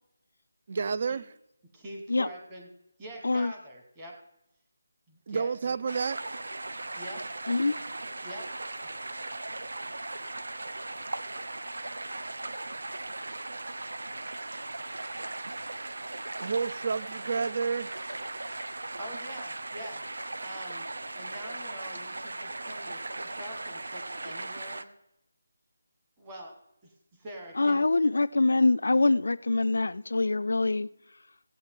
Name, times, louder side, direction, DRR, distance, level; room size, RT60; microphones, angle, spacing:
voice 1, 0.7-1.3 5.3-6.2 16.4-17.9, right 5 dB, 35° right, 0.3 m, -30 dB
voice 2, 1.7-2.7 3.0-4.2 5.1-5.7 6.9-7.3 8.2-8.5 19.0-20.0 20.4-20.9 21.1-24.9 26.2-26.9 27.2-27.9, equal, 15° right, 1.3 m, -44 dB
sound 1, 5.9-24.8, right 2 dB, 80° right, 0.6 m, -38 dB
voice 3, 7.5-7.8 27.6-30.9, left 2 dB, 80° left, 0.4 m, -24 dB
15.5 x 8.8 x 3.6 m
figure-of-eight pair, 175°, 0 cm